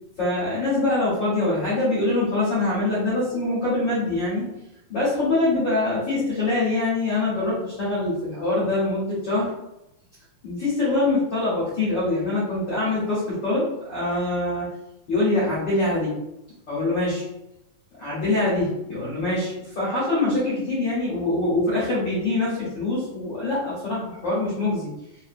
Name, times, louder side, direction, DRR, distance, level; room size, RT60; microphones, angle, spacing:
voice 1, 0.2-4.5 4.9-9.5 10.4-14.7 15.1-16.2 16.7-17.2 18.0-24.9, left 2 dB, 65° left, -9 dB, 1.1 m, -24 dB
5.8 x 2.5 x 2.5 m, 0.89 s
omnidirectional pair, 4.2 m